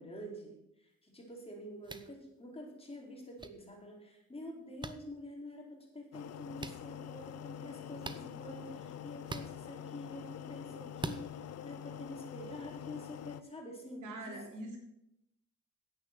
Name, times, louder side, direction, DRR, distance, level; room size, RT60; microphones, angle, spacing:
voice 1, 0.0-14.4, left 1 dB, 20° left, 0 dB, 4.2 m, -47 dB
sound 1, 1.8-2.1 3.4-3.5 4.8-4.9 6.6-6.8 8.0-8.2 9.2-9.5 11.0-11.2, right 3 dB, 15° right, 0.9 m, -40 dB
sound 2, 6.1-13.4, left 9 dB, 55° left, 0.7 m, -46 dB
voice 2, 14.0-14.8, right 2 dB, 85° right, 1 dB, 3.4 m, -43 dB
10.0 x 8.7 x 6.8 m, 0.82 s
cardioid pair, 90°, 30 cm